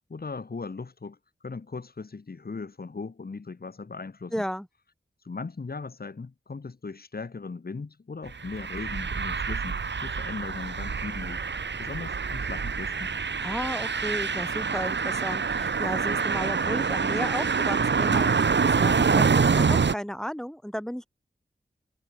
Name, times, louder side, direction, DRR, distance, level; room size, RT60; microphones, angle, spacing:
voice 1, 0.1-1.2 1.4-4.4 5.2-11.4 11.8-13.1, left 4 dB, 55° left, 2.7 m, -38 dB
voice 2, 4.3-4.7 13.4-21.1, equal, 5° left, 5.2 m, -34 dB
sound 1, 8.3-19.9, right 5 dB, 75° right, 1.6 m, -26 dB
wide cardioid pair, 90°, 19 cm